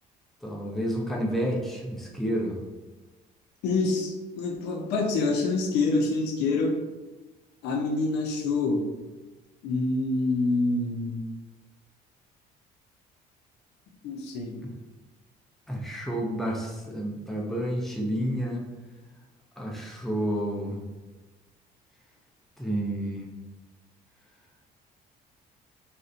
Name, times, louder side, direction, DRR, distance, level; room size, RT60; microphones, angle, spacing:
voice 1, 0.4-2.6 14.6-14.7 15.7-18.6 19.6-20.8 22.6-23.3, equal, ahead, -1 dB, 0.4 m, -30 dB
voice 2, 3.6-6.8 7.6-8.8 9.6-11.2 14.0-14.6, left 3 dB, 80° left, 2 dB, 0.5 m, -26 dB
2.6 x 2.1 x 2.4 m, 1.2 s
cardioid pair, 110°, 17 cm